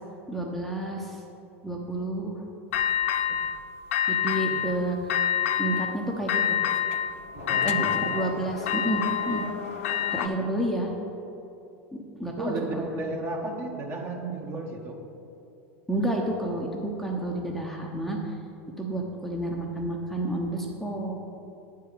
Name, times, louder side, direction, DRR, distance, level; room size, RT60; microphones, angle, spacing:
voice 1, 0.3-1.2 1.6-2.5 3.3-3.4 4.1-5.1 5.6-6.6 7.6-9.4 10.1-10.9 12.2-13.0 15.9-18.3 18.8-21.1, right 1 dB, ahead, -1 dB, 1.0 m, -30 dB
sound 1, 2.7-3.6 3.9-4.8 5.1-6.0 6.3-10.3, left 9 dB, 70° left, 0.4 m, -27 dB
voice 2, 4.5-4.8 7.4-8.0 12.3-15.0, right 2 dB, 35° right, 1 dB, 1.5 m, -34 dB
8.8 x 4.7 x 6.8 m, 2.8 s
hypercardioid pair, 85°, 7 cm